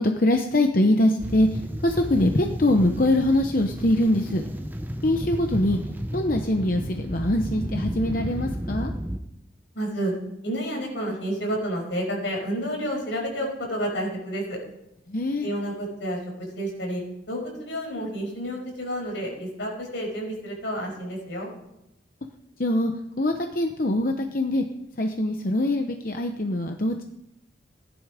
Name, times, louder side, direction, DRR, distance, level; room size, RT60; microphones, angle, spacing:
voice 1, 0.0-4.4 5.0-5.8 6.1-8.9 15.1-15.5 22.6-22.9 23.2-24.6 25.0-27.0, left 1 dB, 45° left, 5 dB, 0.9 m, -23 dB
sound 1, 1.2-9.2, equal, 10° right, 0.7 m, -32 dB
voice 2, 9.7-10.1 10.4-14.6 15.4-17.0 17.3-21.5, equal, 80° left, 0 dB, 5.7 m, -30 dB
16.5 x 11.0 x 5.1 m, 0.85 s
head